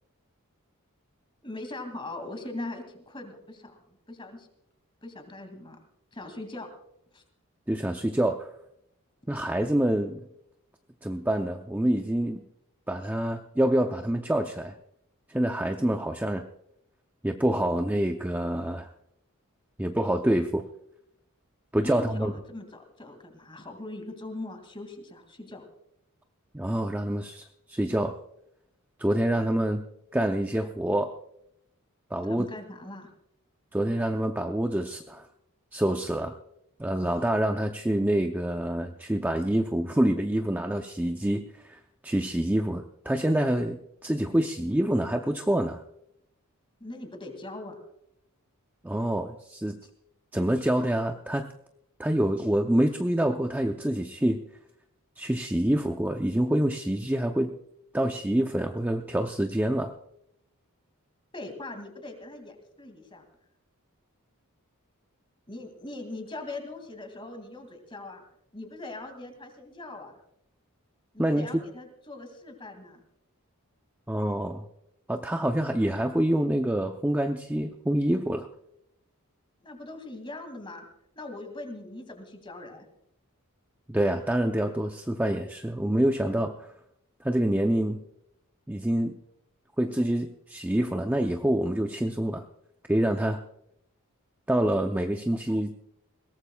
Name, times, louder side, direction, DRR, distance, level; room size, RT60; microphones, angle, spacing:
voice 1, 1.4-4.5 5.0-5.8 6.1-6.7 7.1-7.2 21.8-25.6 32.2-33.1 46.8-47.8 61.3-63.2 65.5-68.2 68.5-70.2 71.1-73.0 79.6-80.8 81.2-82.9, left 2 dB, 20° left, 6 dB, 2.3 m, -41 dB
voice 2, 7.7-8.5 9.3-10.2 11.0-12.4 12.9-14.7 15.3-16.4 17.2-18.9 19.8-20.6 21.7-22.3 26.5-28.2 29.0-29.8 30.1-31.1 32.1-32.5 33.7-35.2 35.7-36.4 36.8-43.8 44.0-45.8 48.8-49.8 50.3-51.5 52.0-54.4 55.2-57.5 57.9-59.9 71.2-71.5 74.1-74.6 75.1-78.5 83.9-86.7 87.2-88.0 88.7-89.1 89.8-92.4 92.9-93.4 94.5-95.7, right 1 dB, 10° right, 4 dB, 0.5 m, -26 dB
21.5 x 17.5 x 2.3 m, 0.77 s
head